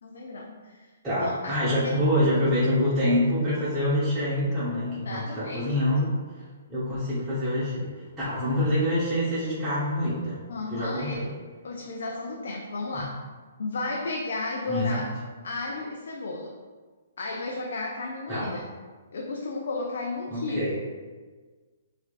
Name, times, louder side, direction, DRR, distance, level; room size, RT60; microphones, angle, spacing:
voice 1, 0.0-0.9 1.2-1.9 5.0-5.6 10.5-11.2 11.6-13.2 13.6-15.1 15.4-16.6 17.2-18.6 19.1-20.9, left 3 dB, 70° left, 0 dB, 0.4 m, -33 dB
voice 2, 1.0-6.1 6.7-7.9 8.2-10.4 10.7-11.3 14.7-15.0 18.3-18.5 20.3-20.8, left 1 dB, 15° right, -12 dB, 1.0 m, -26 dB
4.3 x 2.5 x 2.4 m, 1.4 s
hypercardioid pair, 135°, 0 cm